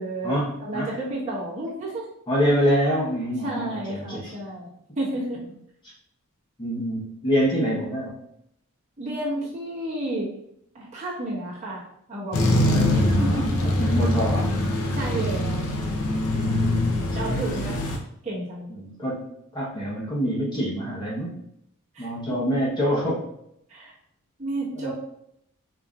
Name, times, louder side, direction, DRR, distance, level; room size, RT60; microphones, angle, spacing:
voice 1, 0.0-2.1 3.4-4.7 5.0-5.4 9.0-10.3 10.7-13.6 14.9-15.7 17.1-17.8 18.2-18.7 21.9-22.4 23.7-23.9 24.4-24.9, right 1 dB, 30° right, -8 dB, 1.2 m, -31 dB
voice 2, 2.3-4.3 6.6-8.1 12.7-14.5 16.3-17.7 18.8-19.3 19.5-21.3 22.0-23.2 24.7-24.9, equal, 20° left, -6 dB, 1.0 m, -26 dB
sound 1, 12.3-18.0, left 1 dB, 75° left, 0.7 m, -23 dB
5.3 x 2.9 x 2.4 m, 0.75 s
head